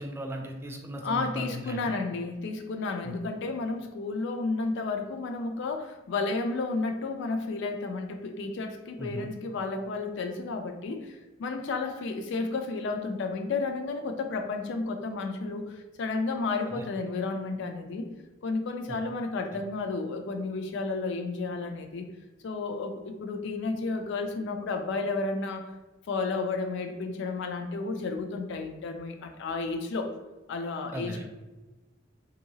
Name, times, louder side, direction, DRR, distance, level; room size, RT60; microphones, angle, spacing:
voice 1, 0.0-1.9 3.0-3.1 9.0-9.3 16.7-16.8 30.9-31.3, right 1 dB, 15° right, 2 dB, 0.3 m, -36 dB
voice 2, 1.0-18.1 18.4-22.1 22.4-25.6 26.1-30.1 30.5-31.3, left 3 dB, 65° left, 6 dB, 0.4 m, -32 dB
2.7 x 2.7 x 2.7 m, 1.1 s
head